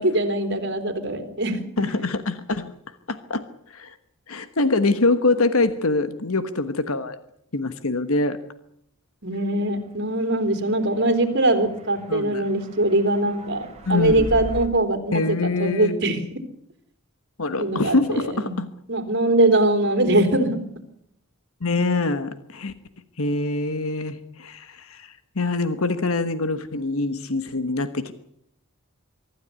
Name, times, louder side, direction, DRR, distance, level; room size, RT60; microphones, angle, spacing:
voice 1, 0.0-1.6 9.2-16.2 17.6-18.5 18.9-20.6, right 1 dB, 50° right, 8 dB, 3.6 m, -22 dB
voice 2, 1.8-2.7 3.1-4.0 4.3-7.2 7.5-8.4 12.1-12.5 13.9-14.3 15.1-16.0 17.4-18.7 21.6-22.7 23.2-28.1, left 3 dB, 70° left, 11 dB, 1.3 m, -24 dB
sound 1, 10.2-14.7, right 1 dB, 30° right, 3.4 m, -38 dB
24.5 x 13.0 x 9.6 m, 0.73 s
head